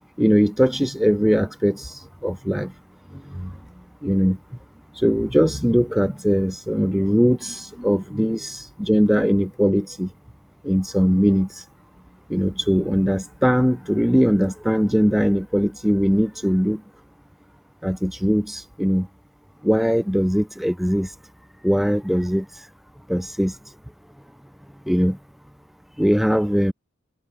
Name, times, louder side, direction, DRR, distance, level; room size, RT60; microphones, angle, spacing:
voice 1, 0.2-2.7 3.1-3.5 4.0-4.4 5.0-10.1 10.6-11.6 12.3-16.8 17.8-19.1 19.6-21.1 21.6-22.5 23.1-23.5 24.9-25.2 26.0-26.7, equal, ahead, 0.4 m, -20 dB
head